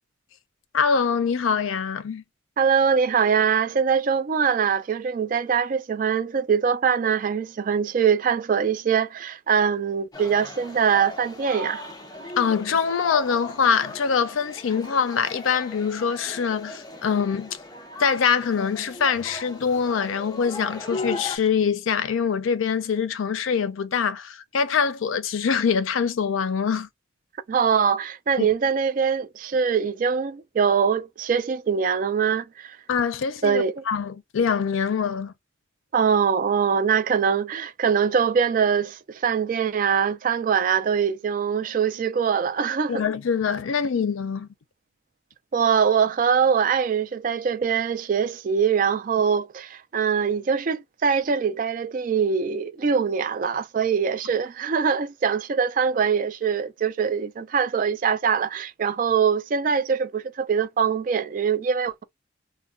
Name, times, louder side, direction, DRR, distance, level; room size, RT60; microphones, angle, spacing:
voice 1, 0.7-2.2 12.4-17.6 18.0-26.9 28.4-28.5 32.9-35.3 42.9-44.5, left 6 dB, 85° left, 0.4 m, -24 dB
voice 2, 2.6-11.8 27.5-32.8 33.4-33.8 35.9-43.0 45.5-62.0, right 6 dB, 40° right, 0.3 m, -23 dB
sound 1, 10.1-21.4, left 2 dB, 20° left, 0.5 m, -38 dB
2.2 x 2.1 x 3.6 m
head